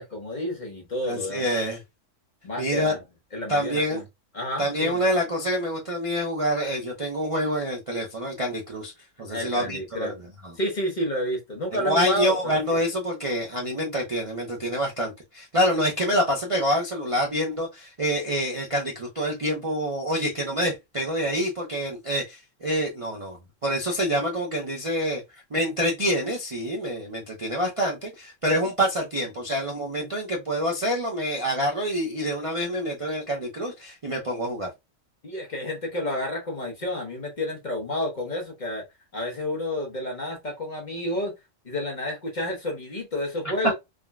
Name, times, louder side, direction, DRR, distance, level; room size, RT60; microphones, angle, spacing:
voice 1, 0.0-1.6 2.4-3.0 3.3-4.0 4.3-5.0 9.3-10.1 10.6-12.3 12.7-12.8 35.2-38.8 39.1-41.3 41.6-43.7, left 1 dB, 40° left, 0.9 m, -30 dB
voice 2, 1.1-1.8 2.6-3.0 3.5-4.0 4.6-8.9 9.2-10.1 10.4-10.5 11.7-23.4 23.6-34.7, equal, 40° right, 0.5 m, -26 dB
3.5 x 2.1 x 2.2 m
omnidirectional pair, 1.3 m